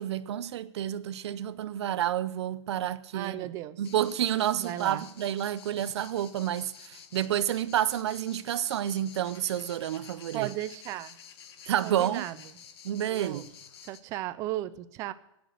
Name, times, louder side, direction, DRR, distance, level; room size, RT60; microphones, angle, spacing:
voice 1, 0.0-3.5 3.8-10.5 11.7-12.2 12.8-13.4, right 11 dB, 60° right, 0.6 m, -29 dB
voice 2, 3.1-3.8 4.6-5.1 10.3-11.2 11.8-12.4 13.0-13.5 13.8-15.1, right 15 dB, 20° right, 0.4 m, -35 dB
sound 1, 3.8-14.0, left 8 dB, 50° left, 1.4 m, -50 dB
17.5 x 6.2 x 7.7 m
hypercardioid pair, 165°, 16 cm